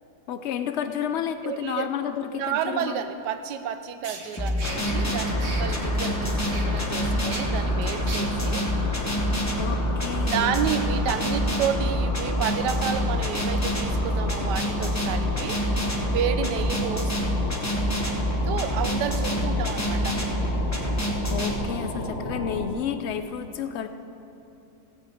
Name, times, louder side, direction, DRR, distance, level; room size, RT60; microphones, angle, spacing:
voice 1, 0.3-3.0 9.6-10.6 21.3-23.9, left 8 dB, 65° left, 9 dB, 0.7 m, -31 dB
voice 2, 1.4-1.9 2.3-8.7 10.3-15.6 16.0-17.1 18.5-20.2, right 8 dB, 80° right, 10 dB, 1.3 m, -30 dB
sound 1, 3.6-3.7 4.0-8.2, right 3 dB, 50° right, 1.5 m, -39 dB
sound 2, 4.4-21.5, left 1 dB, 10° left, 0.9 m, -27 dB
sound 3, 4.6-22.7, left 1 dB, 45° left, 1.7 m, -32 dB
16.5 x 6.6 x 7.7 m, 2.9 s
omnidirectional pair, 1.8 m